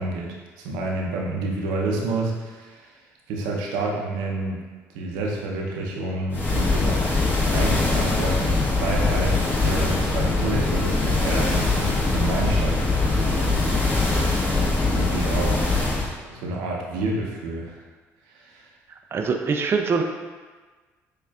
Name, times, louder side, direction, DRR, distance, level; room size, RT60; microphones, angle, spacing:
voice 1, 0.0-2.9 3.3-4.6 4.9-7.0 7.5-12.8 13.2-13.8 14.9-15.7 16.3-17.8 18.3-18.7, right 2 dB, 85° right, -1 dB, 0.6 m, -29 dB
sound 1, 6.3-16.1, left 3 dB, 30° left, 1.2 m, -22 dB
voice 2, 19.1-20.0, right 5 dB, 35° right, 3 dB, 0.3 m, -23 dB
6.5 x 2.4 x 2.3 m, 1.4 s
supercardioid pair, 70°, 7 cm